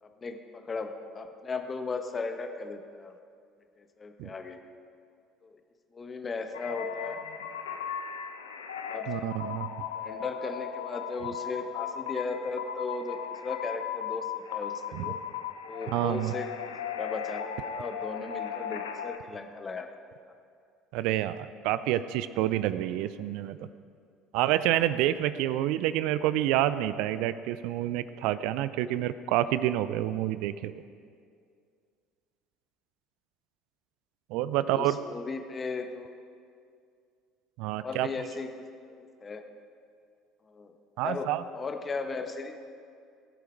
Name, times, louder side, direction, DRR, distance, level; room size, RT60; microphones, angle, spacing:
voice 1, 0.2-3.1 3.8-4.6 5.4-5.6 5.9-7.2 8.8-9.2 9.9-15.2 15.6-16.5 17.0-19.9 34.7-36.1 37.8-39.4 40.5-40.7 41.0-42.5, left 4 dB, 30° left, 6 dB, 1.3 m, -36 dB
sound 1, 6.5-19.2, left 8 dB, 80° left, 0.8 m, -37 dB
voice 2, 9.1-9.7 14.9-15.1 15.9-16.3 20.9-23.7 24.3-30.8 34.3-35.0 37.6-38.1 41.0-41.4, right 13 dB, 60° right, 14 dB, 0.5 m, -28 dB
21.0 x 8.2 x 4.6 m, 2.3 s
figure-of-eight pair, 60°, 0 cm